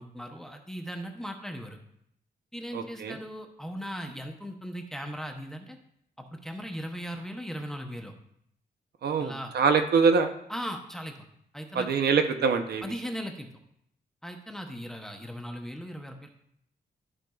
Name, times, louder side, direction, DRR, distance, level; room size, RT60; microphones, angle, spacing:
voice 1, 0.0-1.8 2.5-5.8 6.2-8.1 9.2-9.5 10.5-11.1 11.5-12.0 12.8-13.5 14.2-16.3, equal, 5° left, 3 dB, 0.7 m, -38 dB
voice 2, 2.7-3.2 9.0-10.3 11.7-12.8, right 5 dB, 75° right, 7 dB, 0.7 m, -24 dB
13.0 x 5.2 x 2.3 m, 0.73 s
wide cardioid pair, 180°, 17 cm